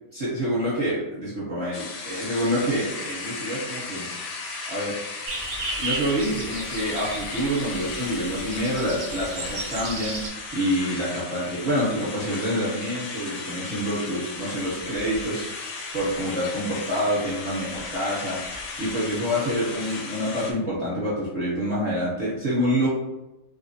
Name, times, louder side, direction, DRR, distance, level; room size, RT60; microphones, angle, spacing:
voice 1, 0.1-4.1 4.7-5.0 5.8-15.4 15.9-22.9, equal, 30° right, -9 dB, 1.0 m, -27 dB
sound 1, 1.7-20.5, left 4 dB, 70° left, 0.8 m, -36 dB
sound 2, 5.3-10.3, right 3 dB, 60° right, 0.8 m, -34 dB
3.0 x 2.0 x 2.7 m, 0.98 s
omnidirectional pair, 1.4 m